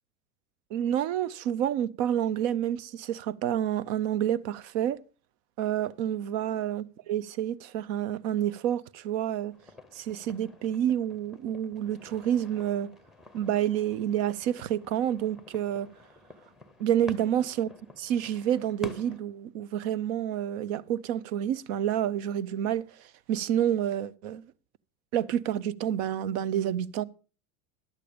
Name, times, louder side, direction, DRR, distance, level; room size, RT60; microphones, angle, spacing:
voice 1, 0.7-5.0 5.6-9.5 9.9-12.9 13.3-15.9 16.8-22.8 23.3-24.4 25.1-27.0, right 10 dB, 50° right, 0.7 m, -29 dB
sound 1, 9.5-19.2, left 1 dB, ahead, 0.9 m, -49 dB
11.5 x 8.3 x 5.1 m
hypercardioid pair, 105°, 45 cm